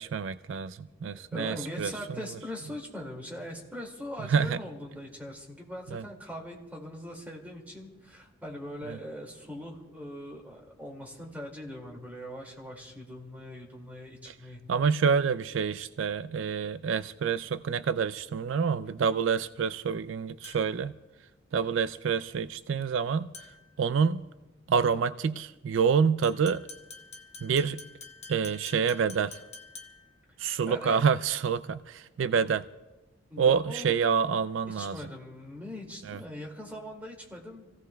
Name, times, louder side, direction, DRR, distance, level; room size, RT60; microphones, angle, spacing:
voice 1, 0.0-1.9 4.3-4.6 5.9-6.0 8.9-9.0 14.3-14.4 14.7-20.9 21.5-23.3 23.8-24.2 24.7-26.6 27.4-27.8 28.3-29.4 30.4-32.6 33.4-35.0 36.1-36.2, right 6 dB, 70° right, 13 dB, 0.4 m, -27 dB
voice 2, 1.3-14.6 30.7-31.1 33.3-34.0 34.7-37.7, equal, 10° right, -1 dB, 2.2 m, -41 dB
sound 1, 20.4-20.9 23.3-23.7 26.2-30.2, left 4 dB, 35° left, 1.1 m, -48 dB
29.0 x 16.0 x 2.3 m, 1.1 s
head